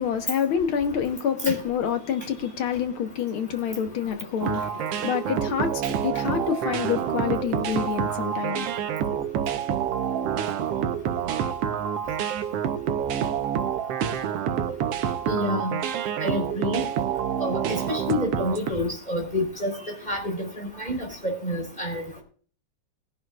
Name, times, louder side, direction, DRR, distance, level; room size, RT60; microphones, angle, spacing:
voice 1, 0.0-8.7, left 8 dB, 55° left, 1.7 m, -27 dB
sound 1, 4.4-18.7, right 9 dB, 70° right, 1.7 m, -27 dB
voice 2, 15.3-15.8 16.2-16.8 17.4-17.6 17.9-19.7 20.1-20.5 20.8-22.0, left 1 dB, 15° left, 3.8 m, -28 dB
20.5 x 11.0 x 2.4 m
omnidirectional pair, 3.4 m